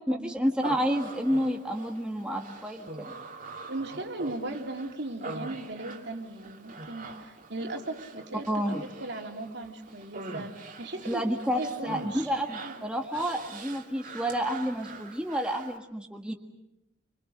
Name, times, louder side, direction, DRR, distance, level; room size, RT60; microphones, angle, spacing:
voice 1, 0.1-3.1 8.5-8.8 11.1-16.3, equal, 5° right, 2 dB, 1.7 m, -30 dB
Human voice, 0.6-15.8, right 3 dB, 45° right, 2.6 m, -44 dB
voice 2, 3.7-8.6 9.0-11.3 11.5-12.3 12.6-12.9, right 2 dB, 65° right, 3 dB, 3.0 m, -37 dB
28.0 x 25.5 x 6.6 m, 0.86 s
head